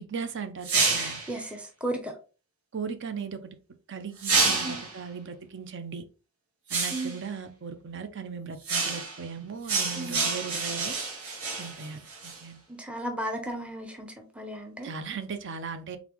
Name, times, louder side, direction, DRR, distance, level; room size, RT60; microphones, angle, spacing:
voice 1, 0.0-1.2 2.7-3.4 3.9-6.0 6.7-11.0 11.5-12.6 14.8-16.0, right 6 dB, 55° right, 0.5 m, -37 dB
sound 1, 0.6-1.3 4.2-5.0 6.7-7.2 8.6-9.2 9.7-12.4, right 4 dB, 85° right, 1.4 m, -28 dB
voice 2, 1.0-2.1 4.6-4.8 6.9-7.2 10.0-10.3 12.8-14.9, right 1 dB, 5° right, 0.6 m, -35 dB
4.1 x 3.4 x 2.9 m
head